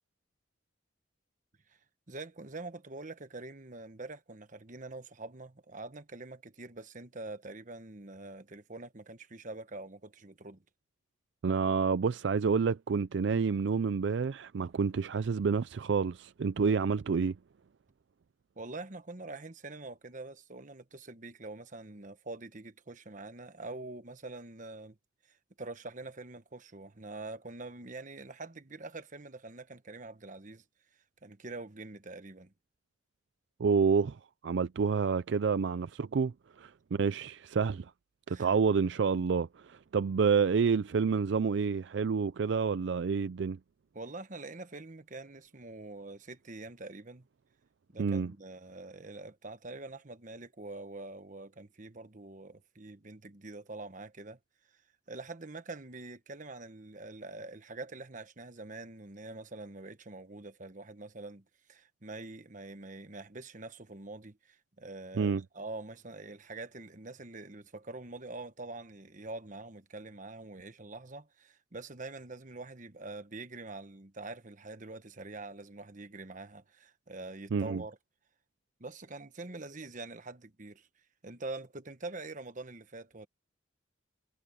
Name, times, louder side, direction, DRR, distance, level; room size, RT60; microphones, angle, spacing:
voice 1, 2.1-10.6 18.6-25.0 25.2-30.6 31.2-32.5 38.3-38.6 43.9-47.3 47.9-54.4 54.7-54.8 55.1-78.0 78.8-80.9 81.2-83.3, right 2 dB, 40° right, 1.2 m, -45 dB
voice 2, 11.4-17.4 33.6-37.9 38.3-43.6 48.0-48.3 65.2-65.4 77.5-77.8, right 5 dB, 65° right, 0.4 m, -29 dB
head